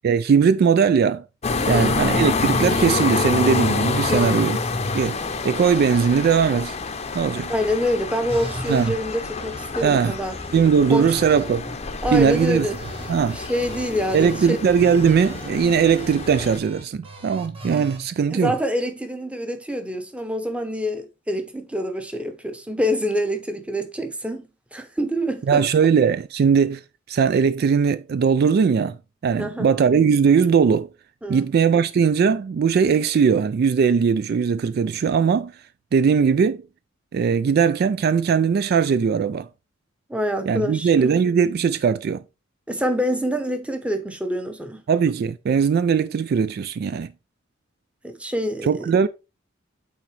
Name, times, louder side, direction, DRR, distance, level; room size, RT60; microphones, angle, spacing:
voice 1, 0.0-1.2 1.7-4.6 4.9-5.2 5.4-6.8 7.1-7.5 8.7-8.9 9.8-10.2 10.5-11.7 12.1-12.7 13.1-13.4 14.1-18.5 25.5-26.8 27.1-29.0 29.2-30.9 31.3-35.5 35.9-36.6 37.1-39.5 40.5-42.2 44.9-47.1 48.6-49.1, right 6 dB, 55° right, 0.3 m, -19 dB
sound 1, 1.4-16.6, left 3 dB, 35° left, 0.7 m, -27 dB
voice 2, 1.7-2.0 4.1-4.5 7.5-10.4 10.9-11.2 12.0-12.8 13.3-14.6 18.3-25.6 29.4-29.7 31.2-31.5 40.1-41.2 42.7-44.8 48.0-49.1, equal, 5° right, 0.9 m, -26 dB
sound 2, 8.3-8.9 9.4-9.8 10.3-11.8 12.1-14.4 14.8-18.0, right 1 dB, 30° right, 1.2 m, -38 dB
8.7 x 3.9 x 3.3 m
head